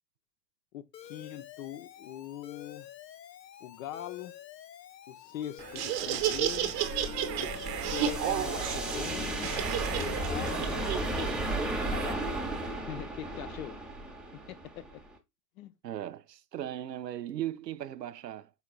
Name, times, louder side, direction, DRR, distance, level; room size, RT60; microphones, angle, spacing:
voice 1, 0.7-2.9 3.6-4.4 5.1-6.7 7.4-9.5 10.0-10.8 11.1-11.6 11.9-12.2 12.8-13.7 14.5-14.8 15.6-15.7, left 12 dB, 55° left, 0.9 m, -42 dB
Alarm, 0.9-10.9, left 11 dB, 90° left, 0.6 m, -46 dB
Laughter, 5.6-12.1, right 10 dB, 35° right, 0.8 m, -33 dB
sound 1, 6.2-15.1, right 2 dB, ahead, 0.6 m, -35 dB
voice 2, 15.8-18.5, right 12 dB, 85° right, 0.5 m, -37 dB
5.6 x 3.7 x 2.4 m
hypercardioid pair, 100°, 49 cm